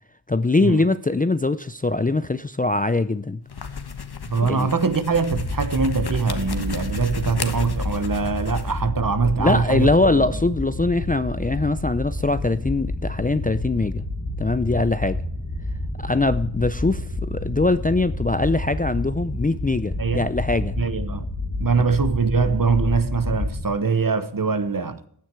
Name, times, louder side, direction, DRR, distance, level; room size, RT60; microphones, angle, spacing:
voice 1, 0.3-3.4 4.4-4.7 9.4-14.0 14.4-15.2 16.0-20.8, left 2 dB, 20° left, 0.5 m, -22 dB
sound 1, 3.4-8.8, left 5 dB, 55° left, 1.4 m, -34 dB
voice 2, 4.3-10.2 20.0-20.3 20.8-21.3 21.6-25.1, right 5 dB, 45° right, 1.2 m, -23 dB
sound 2, 5.3-23.7, left 2 dB, 35° left, 2.2 m, -29 dB
15.0 x 9.6 x 4.6 m
wide cardioid pair, 85°, 46 cm